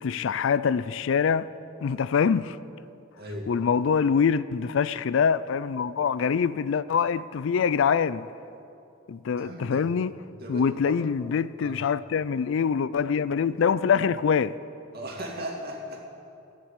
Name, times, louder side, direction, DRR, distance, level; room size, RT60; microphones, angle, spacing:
voice 1, 0.0-1.5 1.8-2.6 3.5-8.3 9.1-10.1 10.5-14.5, left 6 dB, 70° left, 0.4 m, -24 dB
voice 2, 3.2-3.5 9.4-9.8 10.4-11.0 11.6-11.8 14.9-16.0, equal, 50° right, 2.4 m, -37 dB
14.5 x 9.3 x 8.2 m
head